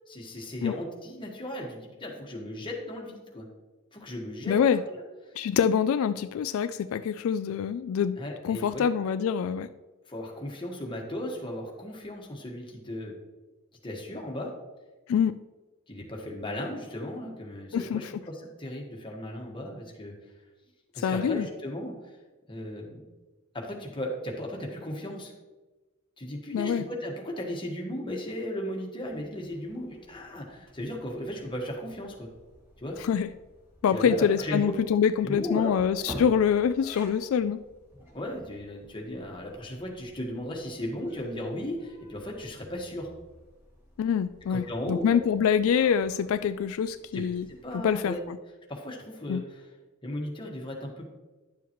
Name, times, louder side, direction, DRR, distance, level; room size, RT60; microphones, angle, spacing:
voice 1, 0.1-3.5 3.9-5.0 8.2-8.8 10.1-13.1 13.8-14.5 15.9-20.1 20.9-21.9 22.5-23.0 23.5-25.3 26.2-32.3 32.8-33.0 33.9-34.6 35.2-35.7 38.0-43.1 44.5-45.2 47.1-48.2 48.7-49.6 50.0-51.1, left 1 dB, 25° left, -1 dB, 1.5 m, -36 dB
voice 2, 4.5-4.8 5.4-8.2 8.4-9.7 15.1-15.3 17.7-18.1 21.0-21.5 26.5-26.9 33.0-33.3 33.8-37.6 44.0-47.5 47.7-48.4 49.3-49.4, left 7 dB, 80° left, 12 dB, 0.3 m, -25 dB
sound 1, 29.0-48.2, equal, 10° right, 2.4 m, -50 dB
10.5 x 7.0 x 3.0 m, 1.2 s
head